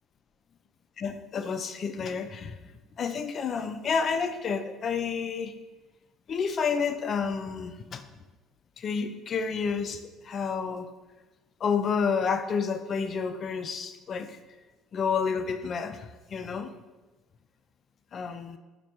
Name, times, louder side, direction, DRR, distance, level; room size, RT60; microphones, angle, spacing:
voice 1, 1.0-2.6 3.0-5.5 6.3-8.0 8.8-10.9 11.6-14.4 14.9-16.7 18.1-18.6, left 6 dB, 45° left, 9 dB, 0.3 m, -30 dB
3.3 x 2.2 x 4.2 m, 1.2 s
hypercardioid pair, 60°, 0 cm